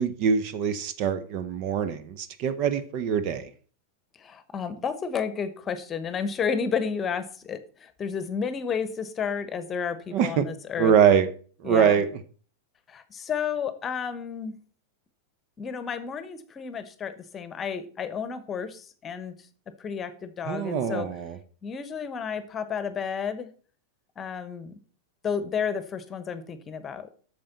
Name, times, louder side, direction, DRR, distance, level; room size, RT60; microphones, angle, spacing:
voice 1, 0.0-3.5 10.1-10.5 10.8-11.3 11.6-12.1 20.5-21.4, right 7 dB, 40° right, 0.8 m, -23 dB
voice 2, 4.2-10.9 11.6-12.0 12.9-14.5 15.6-19.3 19.8-21.1 21.6-23.5 24.2-24.8 25.2-27.1, left 6 dB, 25° left, 1.1 m, -31 dB
8.7 x 6.6 x 4.2 m
figure-of-eight pair, 90°, 0 cm